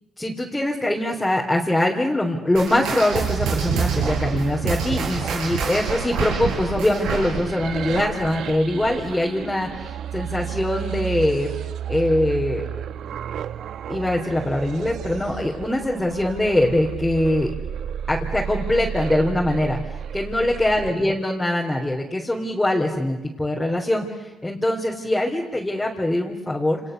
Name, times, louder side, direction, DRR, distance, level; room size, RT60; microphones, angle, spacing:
voice 1, 0.2-11.5 11.9-12.6 13.9-17.5 18.1-19.8 20.1-26.8, left 1 dB, 10° left, -2 dB, 4.0 m, -23 dB
sound 1, 2.6-9.4 9.7-10.0 10.6-10.7 11.5-11.6, right 5 dB, 85° right, 6.2 m, -27 dB
sound 2, 3.1-20.9, right 9 dB, 70° right, 1.1 m, -32 dB
30.0 x 29.0 x 6.9 m, 1.0 s
cardioid pair, 90°, 0 cm